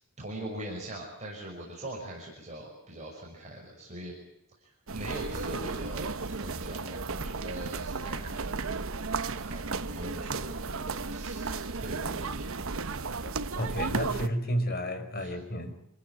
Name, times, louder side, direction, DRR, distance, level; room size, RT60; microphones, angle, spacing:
voice 1, 0.2-4.1 4.6-8.7 9.0-12.9 15.2-15.3, right 1 dB, 35° right, -2 dB, 6.0 m, -42 dB
sound 1, 4.9-14.3, right 4 dB, 65° right, 1.1 m, -34 dB
voice 2, 13.2-15.7, equal, 45° left, 7 dB, 4.6 m, -32 dB
26.5 x 16.0 x 9.4 m, 0.81 s
head